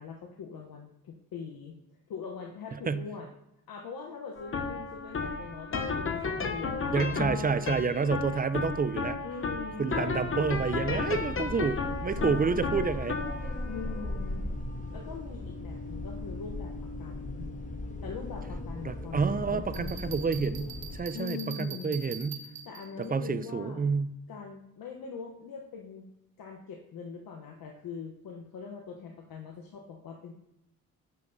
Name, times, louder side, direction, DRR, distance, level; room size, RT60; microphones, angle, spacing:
voice 1, 0.0-1.8 2.1-3.3 3.7-7.2 9.2-9.9 12.2-12.8 13.7-14.5 14.9-17.5 18.0-20.4 21.1-22.0 22.6-23.8 24.3-26.1 26.4-30.3, left 5 dB, 70° left, 1 dB, 0.9 m, -42 dB
voice 2, 2.7-3.1 6.9-9.2 9.8-13.2 18.8-22.4 23.0-24.1, right 5 dB, 25° right, 13 dB, 0.4 m, -29 dB
sound 1, 4.4-21.6, left 4 dB, 35° left, 0.8 m, -36 dB
sound 2, 10.4-21.0, left 1 dB, 20° left, 1.3 m, -38 dB
Bell, 19.7-23.1, right 6 dB, 70° right, 0.9 m, -44 dB
7.6 x 5.6 x 2.6 m, 0.84 s
supercardioid pair, 50°, 36 cm